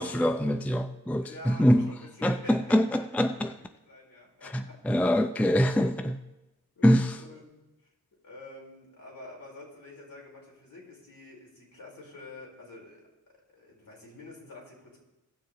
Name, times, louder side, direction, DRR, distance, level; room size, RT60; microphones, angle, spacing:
voice 1, 0.0-1.9 2.2-3.5 4.5-6.2 6.8-7.2, equal, 5° left, 0.5 m, -24 dB
voice 2, 1.2-3.3 3.8-4.8 6.7-7.7 8.2-13.0 13.5-15.0, left 2 dB, 60° left, 4.4 m, -47 dB
17.0 x 6.5 x 3.8 m
cardioid pair, 50°, 39 cm